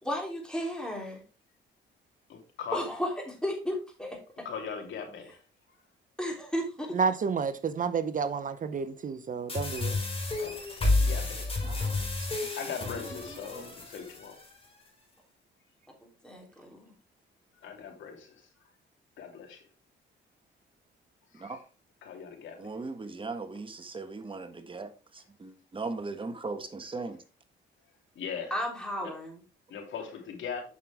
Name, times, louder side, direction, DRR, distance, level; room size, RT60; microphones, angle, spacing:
voice 1, 0.0-1.2 2.7-4.5 6.2-7.0 16.2-16.9 28.5-29.4, equal, 5° left, 3.3 m, -34 dB
voice 2, 4.4-5.4 10.3-10.5 10.8-11.5 12.5-14.4 17.6-18.4 19.2-19.6 21.3-21.6 22.0-22.7 28.1-28.5 29.0-29.1 29.7-30.6, left 6 dB, 75° left, 2.9 m, -39 dB
voice 3, 6.9-9.9, right 5 dB, 40° right, 0.7 m, -30 dB
sound 1, 9.5-14.5, left 2 dB, 30° left, 4.6 m, -31 dB
voice 4, 11.6-12.3 12.7-13.7 21.3-21.6 22.6-27.2, right 3 dB, 25° right, 1.4 m, -39 dB
8.4 x 6.1 x 3.5 m
cardioid pair, 90°, 20 cm